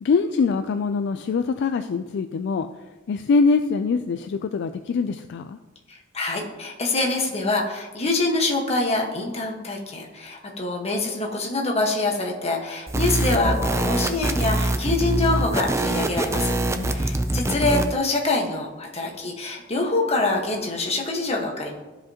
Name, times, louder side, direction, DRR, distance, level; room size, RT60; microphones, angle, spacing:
voice 1, 0.0-2.7 3.1-5.6 16.7-17.1, left 4 dB, 60° left, 7 dB, 0.3 m, -23 dB
voice 2, 5.9-16.5 16.8-21.8, left 2 dB, 30° left, 0 dB, 1.3 m, -25 dB
sound 1, 12.9-17.9, right 1 dB, 15° right, 0.4 m, -24 dB
14.0 x 5.1 x 2.9 m, 1.1 s
head